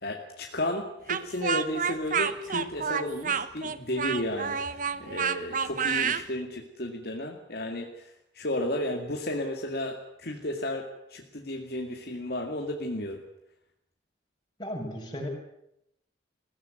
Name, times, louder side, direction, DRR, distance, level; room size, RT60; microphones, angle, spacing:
voice 1, 0.0-13.2, left 1 dB, 60° left, 2 dB, 2.3 m, -33 dB
Speech, 1.1-6.2, right 6 dB, 50° right, 1.1 m, -29 dB
voice 2, 14.6-15.3, equal, 25° left, 0 dB, 7.0 m, -35 dB
21.0 x 17.0 x 9.4 m, 0.79 s
head